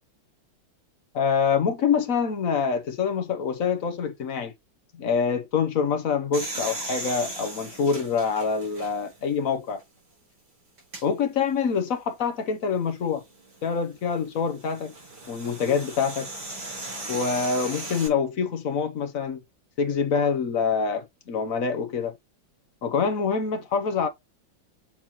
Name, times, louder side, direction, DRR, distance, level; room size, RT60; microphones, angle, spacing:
voice 1, 1.1-4.5 4.9-9.8 11.0-13.2 13.6-14.9 15.3-16.3 17.1-19.4 19.8-22.1 22.8-24.1, left 6 dB, 50° left, 1.2 m, -25 dB
sound 1, 6.3-9.2 9.8-9.9 10.8-11.0 13.2-18.1, right 2 dB, 55° right, 4.2 m, -37 dB
7.5 x 4.4 x 3.0 m
omnidirectional pair, 2.1 m